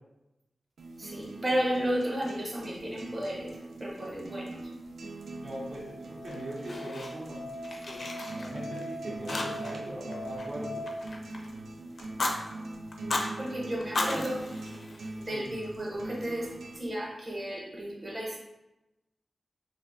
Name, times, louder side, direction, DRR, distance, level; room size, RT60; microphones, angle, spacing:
sound 1, 0.8-16.8, right 2 dB, 90° right, 0.3 m, -42 dB
voice 1, 1.0-3.5 3.8-4.6 13.4-14.4 15.3-16.5 16.7-18.4, equal, 30° right, -4 dB, 0.8 m, -33 dB
Musical instrument, 5.2-10.9, left 1 dB, ahead, 0.4 m, -41 dB
voice 2, 5.3-7.4 7.8-10.8 14.0-14.3 15.3-15.5, right 1 dB, 75° right, -5 dB, 0.7 m, -41 dB
Fire, 6.3-7.4 7.6-8.9 9.3-9.8 10.1-11.5 12.0-12.4 12.9-13.3 13.8-15.4, left 2 dB, 60° left, 0.4 m, -35 dB
2.4 x 2.2 x 3.7 m, 0.95 s
wide cardioid pair, 70°, 0 cm